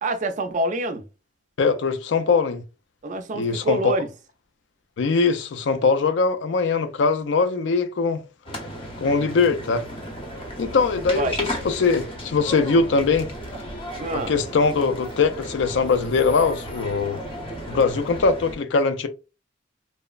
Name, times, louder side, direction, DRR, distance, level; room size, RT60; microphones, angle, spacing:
voice 1, 0.0-1.0 3.0-4.1 11.1-11.4 14.0-14.3, right 2 dB, 40° right, 0.4 m, -26 dB
voice 2, 1.6-2.6 3.3-4.0 5.0-8.2 9.0-9.9 10.6-13.3 14.1-17.2 17.7-19.1, left 4 dB, 70° left, 0.4 m, -21 dB
sound 1, 8.4-18.6, equal, 30° left, 0.7 m, -34 dB
3.0 x 2.0 x 2.3 m
head